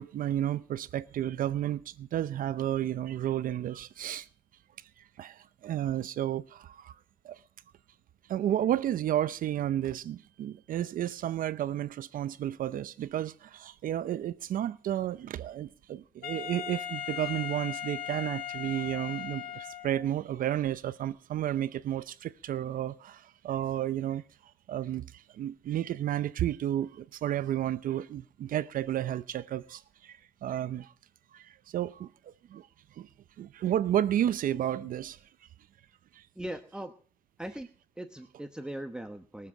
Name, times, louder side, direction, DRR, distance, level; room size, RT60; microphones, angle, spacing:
voice 1, 0.0-4.3 5.0-6.9 7.2-7.4 8.3-30.9 31.3-32.7 33.0-33.1 33.4-35.2 36.1-36.2, right 11 dB, 55° right, 0.7 m, -32 dB
Wind instrument woodwind instrument, 16.2-20.2, left 10 dB, 60° left, 1.7 m, -38 dB
voice 2, 36.3-36.9 37.4-37.7 38.0-39.5, right 1 dB, 5° right, 1.0 m, -39 dB
22.5 x 7.6 x 5.7 m
cardioid pair, 110°, 17 cm